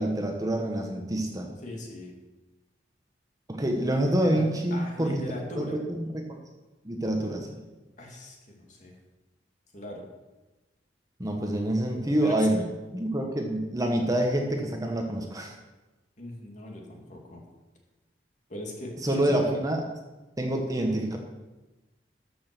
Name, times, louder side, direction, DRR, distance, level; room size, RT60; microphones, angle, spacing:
voice 1, 0.0-1.5 3.5-5.2 5.6-6.4 6.8-7.6 11.2-15.6 19.0-19.8 20.4-21.2, right 1 dB, 20° right, 2 dB, 1.2 m, -27 dB
voice 2, 1.6-2.1 4.0-4.4 4.7-5.8 8.0-8.9 9.7-10.1 12.2-12.5 16.2-17.4 18.5-19.4, left 1 dB, 45° left, 0 dB, 2.4 m, -39 dB
13.5 x 6.3 x 6.1 m, 1.1 s
head